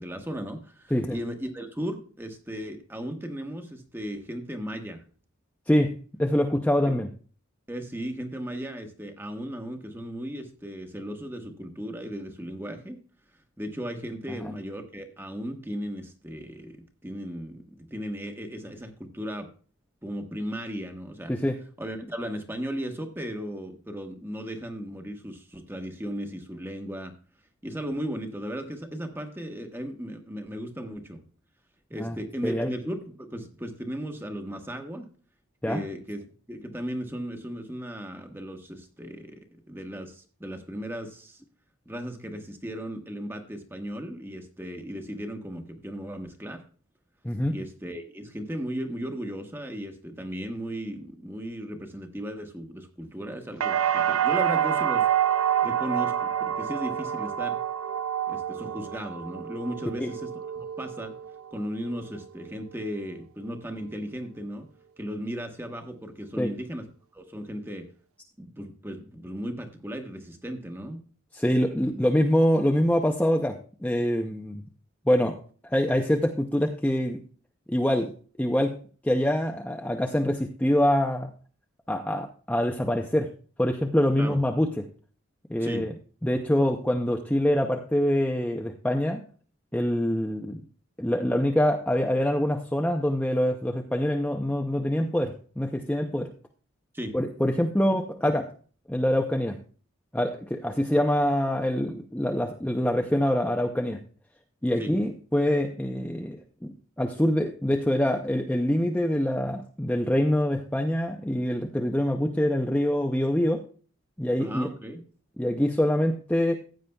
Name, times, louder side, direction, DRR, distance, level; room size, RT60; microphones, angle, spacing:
voice 1, 0.0-5.0 6.9-7.0 7.7-13.0 13.6-19.5 20.0-21.3 21.8-27.1 27.6-31.2 31.9-35.1 35.7-41.4 41.8-46.6 47.5-55.1 55.6-57.6 58.3-61.1 61.5-64.7 65.0-66.9 67.1-67.9 68.4-71.0 84.2-84.4 85.6-85.9 96.9-97.1 104.8-104.9 114.4-115.0, equal, 10° right, 5 dB, 1.1 m, -36 dB
voice 2, 5.7-7.1 14.3-14.5 21.3-21.6 31.9-32.2 32.4-32.7 35.6-35.8 47.2-47.5 60.0-60.1 66.4-66.5 71.3-74.6 75.1-75.4 75.6-77.2 77.7-78.1 78.4-81.3 81.9-83.3 83.6-84.8 85.5-85.9 86.2-89.2 89.7-90.6 91.0-96.3 97.1-98.5 98.9-99.6 100.1-104.0 104.6-113.6 114.2-114.7 115.4-116.5, left 1 dB, 5° left, 2 dB, 0.6 m, -25 dB
sound 1, 53.6-61.5 61.9-62.5, right 10 dB, 85° right, 0.5 m, -27 dB
15.0 x 9.1 x 2.3 m, 0.40 s
head